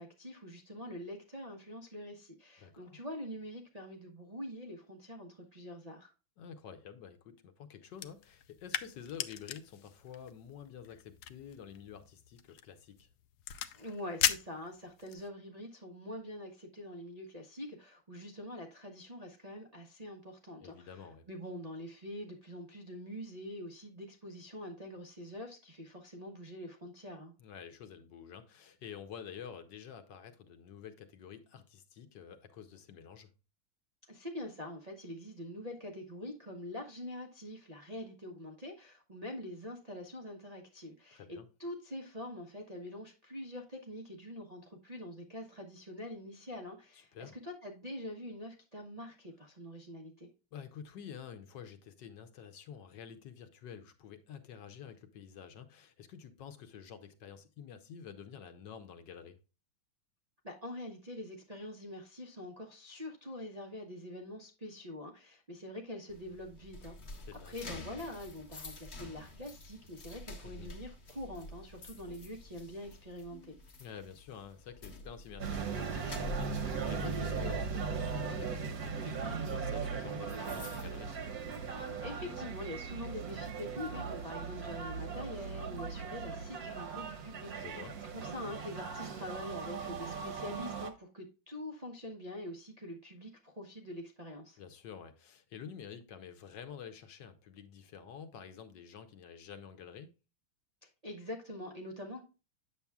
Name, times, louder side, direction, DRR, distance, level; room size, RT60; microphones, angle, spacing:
voice 1, 0.0-6.1 13.7-27.3 34.1-50.3 60.4-67.0 67.5-73.5 82.0-94.6 100.8-102.2, left 1 dB, 75° right, 0.3 m, -45 dB
voice 2, 2.6-3.0 6.4-13.1 20.6-21.3 27.4-33.3 41.1-41.5 46.9-47.4 50.5-59.4 67.2-67.6 70.4-70.7 73.8-81.1 87.5-88.0 94.6-100.1, left 8 dB, 65° left, 1.2 m, -49 dB
sound 1, 7.9-15.3, left 11 dB, 80° left, 0.9 m, -39 dB
sound 2, 66.1-82.0 82.3-82.6 83.1-84.8, left 2 dB, 40° left, 1.2 m, -49 dB
sound 3, 75.4-90.9, right 5 dB, 55° right, 1.1 m, -38 dB
8.9 x 6.9 x 2.3 m
omnidirectional pair, 2.3 m